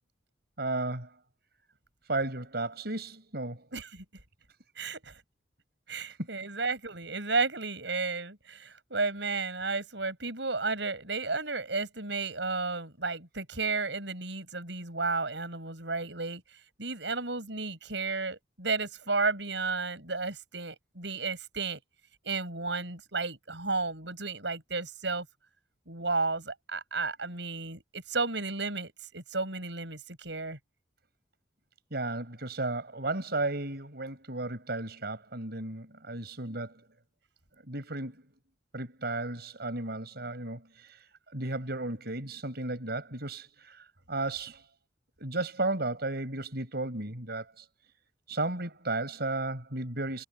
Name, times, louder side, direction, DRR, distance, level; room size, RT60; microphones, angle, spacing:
voice 1, 0.6-1.1 2.1-3.7 5.9-6.0 31.9-36.8 37.7-38.2 38.7-41.1 41.3-44.6 45.2-47.7 48.3-50.2, right 2 dB, 65° right, 5.6 m, -34 dB
voice 2, 3.7-4.0 4.8-5.1 5.9-16.4 16.8-21.8 22.2-25.3 25.9-30.6, right 3 dB, 80° right, 7.1 m, -33 dB
head